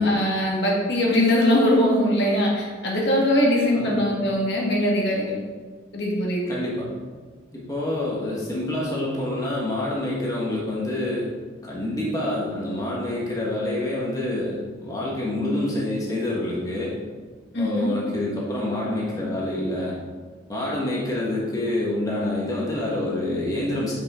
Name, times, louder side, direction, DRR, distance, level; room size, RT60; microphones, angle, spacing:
voice 1, 0.0-5.4 5.9-6.4 17.5-17.9, left 1 dB, 70° left, -3 dB, 1.8 m, -21 dB
voice 2, 6.5-6.9 7.5-11.3 11.6-16.9 17.5-20.0 20.5-23.9, left 1 dB, 20° left, -5 dB, 1.3 m, -27 dB
7.3 x 5.9 x 3.6 m, 1.5 s
head